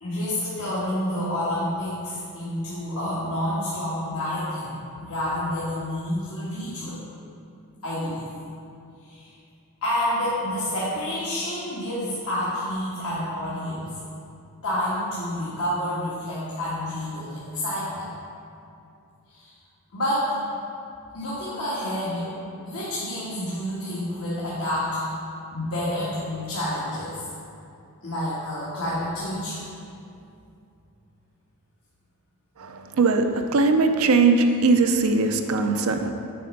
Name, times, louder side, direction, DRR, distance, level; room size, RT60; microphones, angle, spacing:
voice 1, 0.0-7.0 7.8-8.3 9.0-9.3 9.8-13.9 14.6-18.1 19.3-19.5 19.9-20.4 21.1-22.3 22.7-25.1 25.5-27.2 28.0-29.6, left 1 dB, 75° left, -9 dB, 1.5 m, -29 dB
voice 2, 32.6-33.3 33.5-36.1, right 3 dB, 70° right, 6 dB, 0.5 m, -20 dB
7.8 x 4.3 x 5.2 m, 2.6 s
head